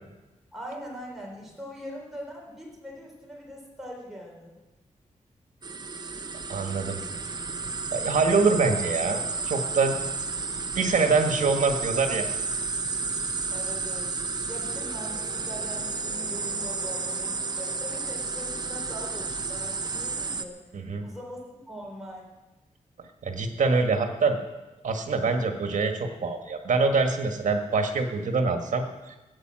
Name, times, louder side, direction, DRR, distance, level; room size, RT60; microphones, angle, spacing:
voice 1, 0.5-4.6 13.5-14.2 14.5-20.6 21.0-22.3, equal, ahead, -2 dB, 4.2 m, -41 dB
sound 1, 5.6-20.5, right 4 dB, 35° right, 0.8 m, -32 dB
voice 2, 6.5-7.0 7.9-9.9 10.7-12.5 20.7-21.1 23.2-24.4 24.8-29.2, right 4 dB, 75° right, 5 dB, 1.7 m, -25 dB
sound 2, 13.9-19.3, left 3 dB, 45° left, 5.7 m, -48 dB
15.0 x 8.7 x 7.6 m, 1.1 s
wide cardioid pair, 150°, 13 cm